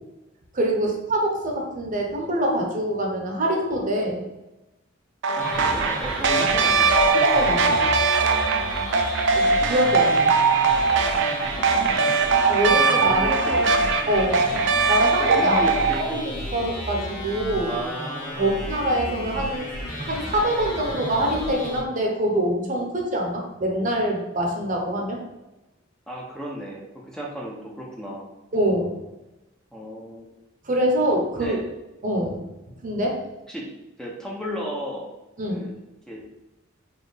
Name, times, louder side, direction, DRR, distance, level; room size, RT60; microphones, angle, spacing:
voice 1, 0.5-4.3 6.9-7.0 7.3-7.9 9.3-10.3 12.5-13.3 14.1-14.5 14.9-15.6 16.0-17.7 18.3-19.7 20.0-25.2 28.5-29.0 30.6-31.6 32.0-32.5 32.8-33.2 35.4-35.7, right 1 dB, 40° right, 0 dB, 0.8 m, -24 dB
sound 1, 5.2-16.0, right 4 dB, 65° right, 0.4 m, -21 dB
sound 2, 5.4-21.8, left 1 dB, 45° left, 1.4 m, -33 dB
voice 2, 5.4-6.9 11.2-11.8 13.1-13.9 15.2-16.3 17.6-18.5 26.1-28.3 29.7-30.3 31.4-31.7 33.5-33.7 34.0-35.1 35.5-35.7 36.1-36.2, equal, 5° left, -3 dB, 0.6 m, -34 dB
4.3 x 2.8 x 3.2 m, 1.0 s
head